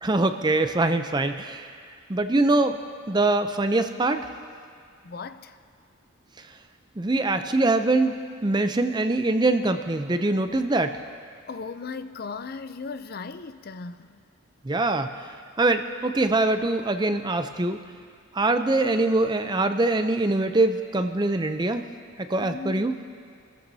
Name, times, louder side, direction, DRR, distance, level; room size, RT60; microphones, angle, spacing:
voice 1, 0.0-1.7 2.1-2.8 3.1-4.3 7.0-8.1 8.4-11.0 14.6-15.1 15.6-17.8 18.3-21.8 22.3-23.0, right 2 dB, 20° right, 8 dB, 0.5 m, -23 dB
voice 2, 5.0-5.6 11.5-14.2 22.4-22.9, left 4 dB, 45° left, 11 dB, 0.5 m, -37 dB
29.5 x 14.0 x 2.8 m, 2.2 s
head